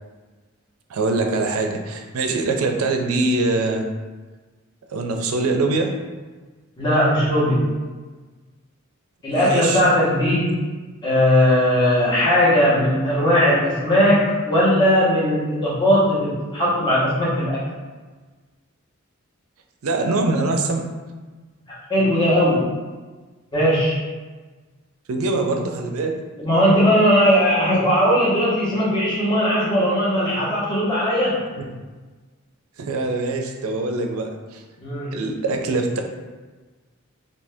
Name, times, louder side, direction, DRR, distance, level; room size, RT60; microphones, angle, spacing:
voice 1, 0.9-3.9 4.9-5.9 9.3-9.8 19.8-20.8 25.1-26.1 32.8-34.6 35.1-36.0, right 3 dB, 80° right, 3 dB, 0.4 m, -23 dB
voice 2, 6.8-7.7 9.2-10.5 11.0-17.6 21.9-22.7 23.5-24.0 26.4-31.4 34.8-35.2, equal, 20° left, -9 dB, 1.1 m, -18 dB
2.7 x 2.6 x 3.4 m, 1.3 s
head